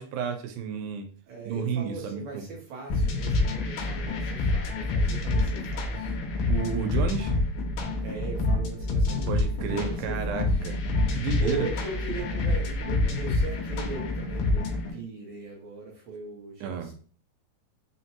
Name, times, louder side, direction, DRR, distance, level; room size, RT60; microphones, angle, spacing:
voice 1, 0.0-1.1 1.5-2.4 6.5-7.3 9.3-10.8 11.1-11.6 16.6-16.9, right 6 dB, 90° right, 5 dB, 2.4 m, -31 dB
voice 2, 1.3-6.2 8.0-10.6 11.4-14.7 14.9-16.9, right 3 dB, 70° right, -2 dB, 1.6 m, -39 dB
sound 1, 2.9-14.9, left 2 dB, 90° left, 2.6 m, -27 dB
5.6 x 2.1 x 2.8 m, 0.43 s
omnidirectional pair, 4.1 m